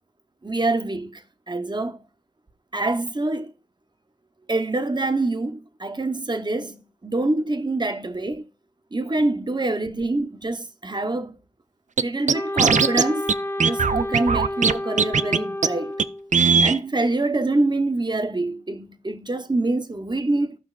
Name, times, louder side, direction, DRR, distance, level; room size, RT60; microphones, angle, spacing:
voice 1, 0.4-2.0 2.7-3.5 4.5-8.5 8.9-11.3 12.0-13.3 13.6-16.0 16.6-20.6, right 2 dB, 35° right, 0.9 m, -25 dB
Scratching (performance technique), 12.0-12.1 12.3-13.0 13.3-13.4 13.6-14.7 15.0-15.4 15.6-15.7 16.0-16.1 16.3-16.8, right 5 dB, 85° right, 0.4 m, -18 dB
Wind instrument woodwind instrument, 12.3-16.3, left 1 dB, 20° left, 0.5 m, -30 dB
14.0 x 5.7 x 2.4 m
wide cardioid pair, 45°, 12 cm